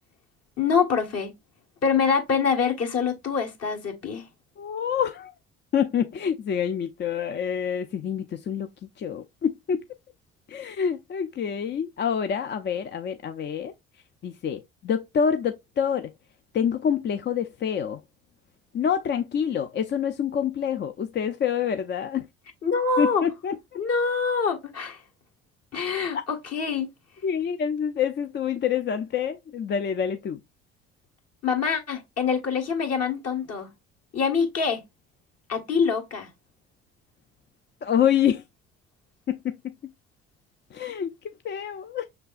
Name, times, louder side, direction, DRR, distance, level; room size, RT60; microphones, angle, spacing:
voice 1, 0.6-1.3 1.8-4.2 22.6-23.2 23.7-25.0 25.7-26.9 31.4-33.7 34.1-34.8 35.5-36.3, left 5 dB, 50° left, 1.4 m, -25 dB
voice 2, 4.6-5.3 5.7-8.7 9.0-9.8 10.5-13.7 14.2-16.1 16.5-18.0 18.7-22.3 23.0-23.6 27.2-30.4 37.8-38.4 39.3-39.7 40.7-41.1 41.4-42.1, left 8 dB, 35° left, 0.4 m, -26 dB
5.9 x 3.3 x 2.4 m
hypercardioid pair, 55°, 31 cm